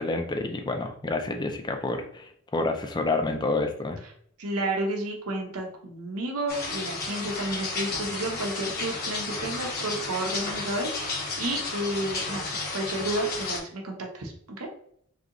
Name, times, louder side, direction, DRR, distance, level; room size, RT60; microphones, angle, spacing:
voice 1, 0.0-4.0, left 2 dB, 20° left, 4 dB, 0.5 m, -29 dB
voice 2, 4.4-14.7, right 1 dB, 85° right, 1 dB, 0.8 m, -31 dB
sound 1, 6.5-13.6, left 3 dB, 45° left, 1.1 m, -32 dB
3.4 x 2.9 x 3.7 m, 0.64 s
head